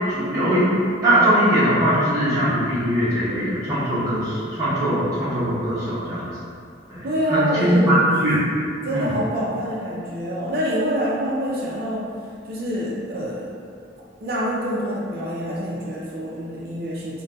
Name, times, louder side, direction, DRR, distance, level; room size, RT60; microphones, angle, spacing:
voice 1, 0.1-0.7 1.0-6.3 6.9-8.5 8.9-9.1, right 1 dB, 15° right, -12 dB, 0.8 m, -21 dB
voice 2, 7.0-8.0 8.8-12.1 12.5-13.5 14.2-17.2, equal, 55° right, -5 dB, 0.5 m, -26 dB
3.9 x 2.2 x 2.3 m, 2.3 s
head